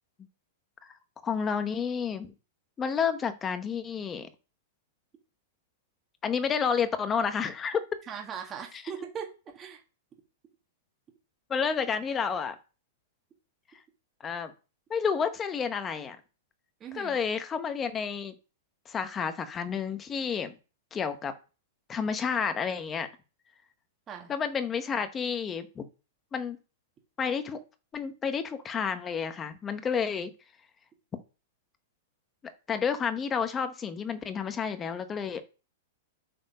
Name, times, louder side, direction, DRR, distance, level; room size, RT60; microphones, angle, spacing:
voice 1, 1.2-2.3 2.8-4.3 6.2-7.8 11.5-12.6 14.2-14.5 14.9-16.2 16.9-18.3 18.9-20.5 20.9-21.3 21.9-23.1 24.3-25.9 26.3-26.6 27.2-27.6 27.9-30.3 32.7-35.4, left 6 dB, 20° left, 10 dB, 1.0 m, -30 dB
voice 2, 8.1-9.3 9.5-9.8 16.8-17.2 24.1-24.3, right 7 dB, 20° right, 2 dB, 1.6 m, -39 dB
7.7 x 4.4 x 5.4 m, 0.34 s
hypercardioid pair, 145°, 0 cm